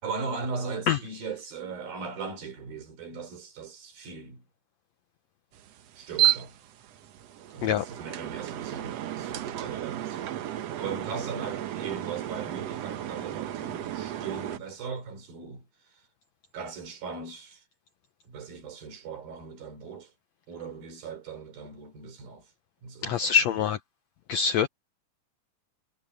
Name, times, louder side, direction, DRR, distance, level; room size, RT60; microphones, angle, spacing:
voice 1, 0.0-4.4 6.0-6.6 7.5-15.7 16.5-17.6 18.3-20.1 20.5-22.5 22.8-23.7, right 5 dB, 85° right, 6.2 m, -38 dB
sound 1, 5.5-14.6, right 13 dB, 65° right, 1.7 m, -32 dB
voice 2, 23.0-23.8 24.3-24.7, left 7 dB, 80° left, 1.5 m, -24 dB
omnidirectional pair, 4.1 m